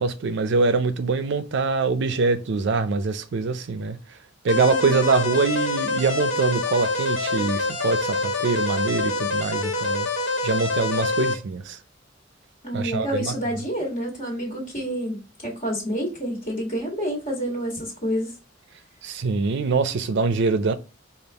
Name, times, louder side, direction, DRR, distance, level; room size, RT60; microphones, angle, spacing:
voice 1, 0.0-4.0 4.4-10.1 10.4-11.8 12.7-13.3 19.0-20.7, right 4 dB, 65° right, 0.4 m, -24 dB
sound 1, 4.5-11.3, left 2 dB, 90° left, 1.4 m, -26 dB
voice 2, 4.5-5.0 12.6-18.3, equal, 45° left, 1.7 m, -28 dB
5.2 x 2.4 x 3.4 m
head